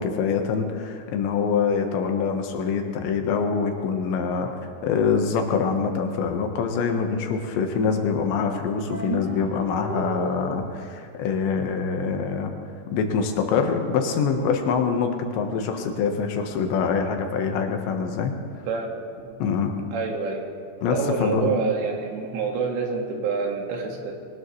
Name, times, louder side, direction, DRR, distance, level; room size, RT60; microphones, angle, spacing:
voice 1, 0.0-4.5 4.8-12.5 12.9-18.3 19.4-19.8 20.8-21.6, left 5 dB, 80° left, 4 dB, 3.5 m, -25 dB
sound 1, 8.9-10.9, right 2 dB, 10° right, 2.4 m, -33 dB
voice 2, 18.7-19.4 19.9-20.4 20.9-24.1, right 5 dB, 80° right, 1 dB, 4.1 m, -27 dB
23.5 x 19.0 x 3.2 m, 2.3 s
omnidirectional pair, 5.1 m